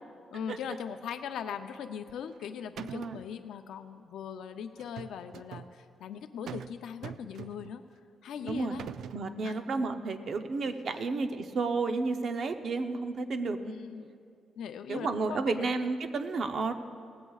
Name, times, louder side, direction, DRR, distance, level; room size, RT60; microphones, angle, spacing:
voice 1, 0.3-7.8 8.2-8.9 9.4-9.6 10.9-11.1 13.6-14.1 14.6-15.7, left 8 dB, 85° left, 8 dB, 0.5 m, -40 dB
sound 1, 2.1-2.5 2.8-3.3 4.8-5.7 6.5-6.8 7.0-7.8 8.5-9.2, right 8 dB, 75° right, 0.3 m, -43 dB
voice 2, 8.4-8.8 9.1-13.8 14.9-16.7, right 3 dB, 45° right, 8 dB, 0.7 m, -31 dB
18.0 x 16.0 x 2.4 m, 2.4 s
wide cardioid pair, 165°, 0 cm